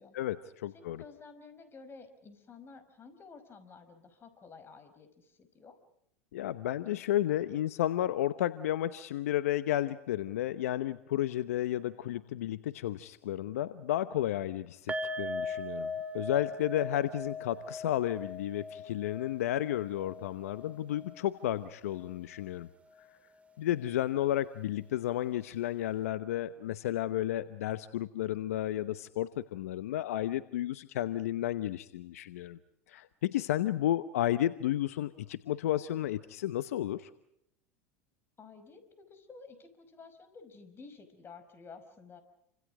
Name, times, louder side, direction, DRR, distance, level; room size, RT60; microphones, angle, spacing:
voice 1, 0.1-1.0 6.3-22.7 23.6-32.6 32.9-37.1, left 13 dB, 80° left, 14 dB, 1.0 m, -32 dB
voice 2, 0.7-5.8 38.4-42.2, left 4 dB, 30° left, 9 dB, 5.2 m, -52 dB
sound 1, 14.9-22.1 22.4-22.5 22.9-23.0, left 2 dB, 15° right, 2.4 m, -40 dB
29.5 x 26.0 x 5.0 m, 0.75 s
hypercardioid pair, 90°, 8 cm